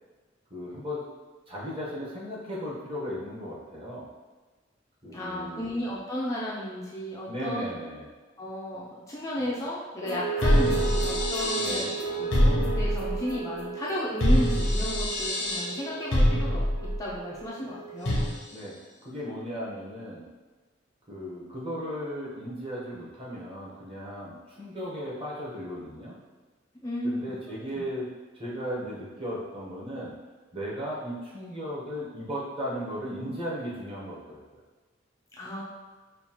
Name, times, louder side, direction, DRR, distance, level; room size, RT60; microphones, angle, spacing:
voice 1, 0.5-1.1 1.5-4.1 5.0-5.7 7.3-8.1 11.5-12.0 18.5-20.2 21.1-26.2 27.0-28.1 28.3-30.1 30.5-34.4, equal, 30° right, -6 dB, 1.0 m, -36 dB
voice 2, 5.1-7.6 8.4-16.6 17.0-18.2 26.8-27.3 27.7-27.8 35.3-35.6, equal, 15° left, -6 dB, 0.4 m, -34 dB
sound 1, 10.0-18.4, equal, 85° left, 0.8 m, -26 dB
5.5 x 2.4 x 2.9 m, 1.3 s
head